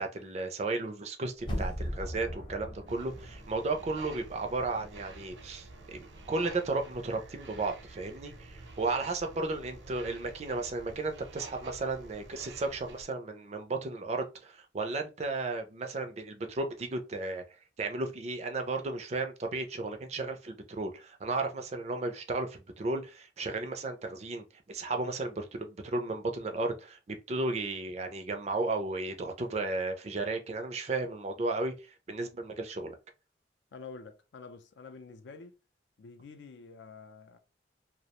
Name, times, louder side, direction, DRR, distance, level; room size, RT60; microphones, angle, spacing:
voice 1, 0.0-17.4 17.8-31.7 32.1-32.9, right 3 dB, 35° right, 0.4 m, -34 dB
sound 1, 1.4-4.3 4.7-4.8, equal, 25° left, 0.6 m, -38 dB
sound 2, 2.9-13.1, right 2 dB, 75° right, 0.6 m, -49 dB
voice 2, 33.7-35.5 36.0-37.4, left 4 dB, 75° left, 0.4 m, -48 dB
2.4 x 2.1 x 2.8 m
head